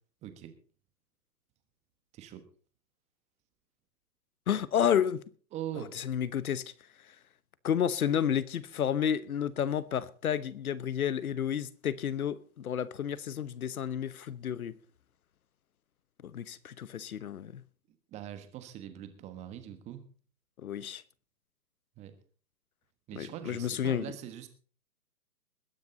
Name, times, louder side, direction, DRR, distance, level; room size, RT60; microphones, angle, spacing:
voice 1, 0.2-0.5 2.1-2.4 5.5-5.9 18.1-20.1 22.0-22.1 23.1-24.5, right 11 dB, 15° right, 1.3 m, -42 dB
voice 2, 4.5-5.2 5.9-6.6 7.6-14.7 16.3-17.6 20.6-21.0 23.2-24.1, left 9 dB, 60° left, 1.1 m, -31 dB
21.0 x 9.6 x 3.9 m
hypercardioid pair, 145°, 49 cm